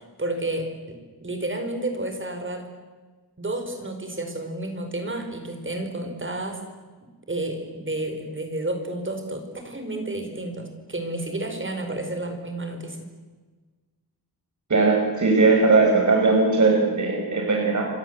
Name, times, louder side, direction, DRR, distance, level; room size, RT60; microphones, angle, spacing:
voice 1, 0.0-2.7 3.4-6.6 7.3-13.0, right 2 dB, 30° right, 5 dB, 4.7 m, -31 dB
voice 2, 14.7-17.9, right 3 dB, 50° right, 1 dB, 5.4 m, -19 dB
29.5 x 24.5 x 8.0 m, 1.3 s
wide cardioid pair, 180°, 39 cm